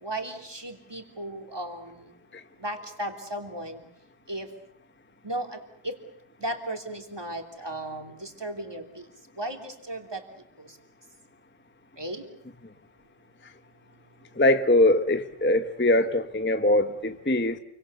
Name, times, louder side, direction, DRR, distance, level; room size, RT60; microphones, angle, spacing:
voice 1, 0.0-2.1 2.6-3.8 4.3-4.5 5.2-5.6 5.8-5.9 6.4-9.0 9.4-10.2 12.0-12.2, right 1 dB, 15° right, 3.0 m, -35 dB
voice 2, 14.4-17.6, left 1 dB, 15° left, 0.5 m, -22 dB
28.5 x 24.5 x 6.9 m
omnidirectional pair, 1.8 m